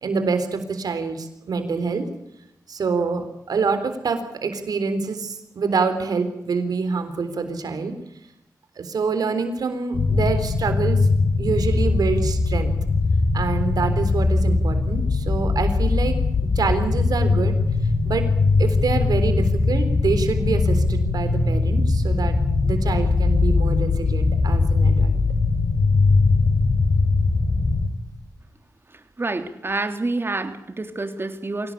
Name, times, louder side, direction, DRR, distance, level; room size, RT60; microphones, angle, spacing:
voice 1, 0.0-2.1 2.7-7.9 8.8-11.0 11.4-12.7 13.3-16.2 16.6-17.6 18.0-18.3 18.6-22.4 22.6-25.1, right 4 dB, 85° right, 8 dB, 3.8 m, -26 dB
sound 1, 9.9-27.9, left 3 dB, 80° left, 4.2 m, -20 dB
voice 2, 29.2-31.7, right 2 dB, 35° right, 7 dB, 3.3 m, -27 dB
24.5 x 17.5 x 8.6 m, 0.82 s
cardioid pair, 70°, 6 cm